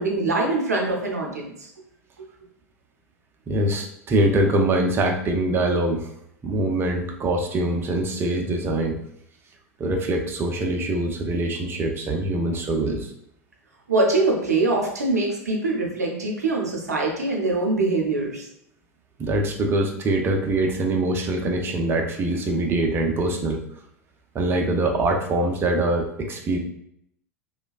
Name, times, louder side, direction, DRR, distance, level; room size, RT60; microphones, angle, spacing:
voice 1, 0.0-1.5 13.9-18.5, right 2 dB, 85° right, 0 dB, 0.7 m, -23 dB
voice 2, 3.5-6.1 6.4-9.0 9.8-13.1 19.2-23.6 24.3-26.6, right 1 dB, 30° right, 2 dB, 0.5 m, -23 dB
3.1 x 2.2 x 2.3 m, 0.73 s
figure-of-eight pair, 85°, 8 cm